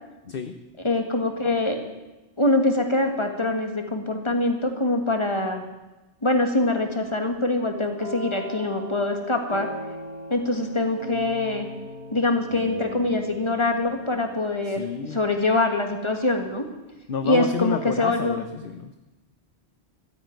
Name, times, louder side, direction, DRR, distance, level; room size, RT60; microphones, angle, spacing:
voice 1, 0.3-0.6 14.7-15.2 17.1-19.0, left 7 dB, 55° left, 8 dB, 1.0 m, -30 dB
voice 2, 0.8-1.8 2.4-5.6 6.2-9.7 10.3-11.7 12.1-16.7 17.2-18.4, left 2 dB, 25° left, 4 dB, 1.7 m, -24 dB
sound 1, 8.0-15.7, equal, 25° right, 2.4 m, -38 dB
13.0 x 9.7 x 9.4 m, 1.1 s
omnidirectional pair, 1.2 m